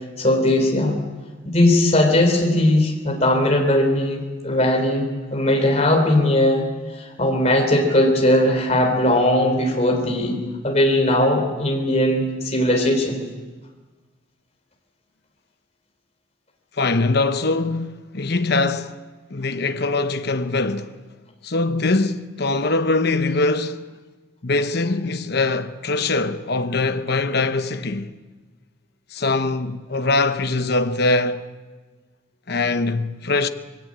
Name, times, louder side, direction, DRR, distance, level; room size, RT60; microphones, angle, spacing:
voice 1, 0.2-1.0 1.5-5.1 5.3-6.6 6.9-13.2, left 1 dB, 30° left, 3.8 m, -19 dB
voice 2, 16.8-19.0 19.3-21.0 21.4-23.9 24.4-28.1 29.1-31.5 32.5-33.5, left 3 dB, 50° left, 0.9 m, -22 dB
21.0 x 16.5 x 8.8 m
head